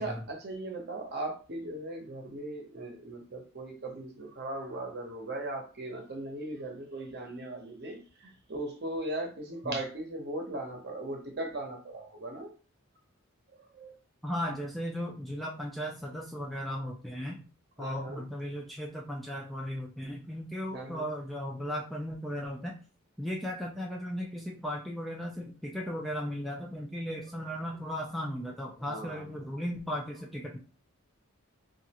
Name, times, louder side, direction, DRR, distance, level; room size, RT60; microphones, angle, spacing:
voice 1, 0.0-12.5 13.7-13.9 17.8-18.2 20.7-21.1 28.9-29.5, right 1 dB, 50° right, 2 dB, 0.8 m, -38 dB
voice 2, 14.2-17.4 17.8-22.7 23.2-30.6, equal, ahead, -2 dB, 0.3 m, -36 dB
3.1 x 2.4 x 2.8 m, 0.37 s
head